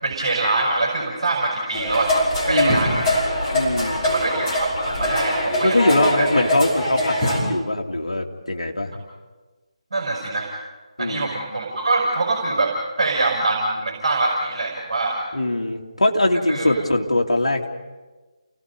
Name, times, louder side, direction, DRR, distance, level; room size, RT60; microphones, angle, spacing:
voice 1, 0.0-2.2 2.5-3.2 4.0-6.4 9.9-10.5 11.0-15.2 16.5-16.7, right 2 dB, 55° right, -1 dB, 5.7 m, -24 dB
sound 1, 1.7-7.4, equal, 15° left, 5.9 m, -23 dB
voice 2, 2.5-3.0 3.5-4.0 5.6-8.9 11.0-11.3 15.3-17.7, left 1 dB, 65° left, 1 dB, 2.7 m, -22 dB
29.5 x 18.5 x 5.4 m, 1.3 s
figure-of-eight pair, 155°, 3 cm